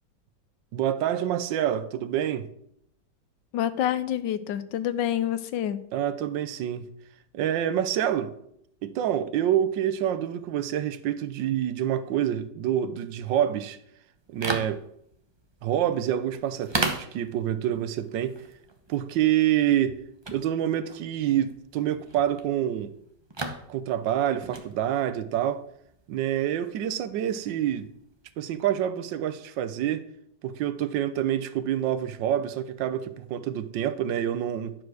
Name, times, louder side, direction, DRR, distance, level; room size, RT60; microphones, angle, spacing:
voice 1, 0.7-2.5 5.9-6.9 7.3-8.3 8.8-13.8 14.3-14.8 15.6-18.4 18.9-20.0 20.3-22.9 23.7-25.6 26.1-27.9 28.4-30.0 30.4-34.8, right 11 dB, 80° right, 1.4 m, -27 dB
voice 2, 3.5-5.8, left 11 dB, 80° left, 1.3 m, -27 dB
sound 1, 14.2-28.4, right 2 dB, 30° right, 0.4 m, -38 dB
10.5 x 4.8 x 6.2 m
omnidirectional pair, 2.0 m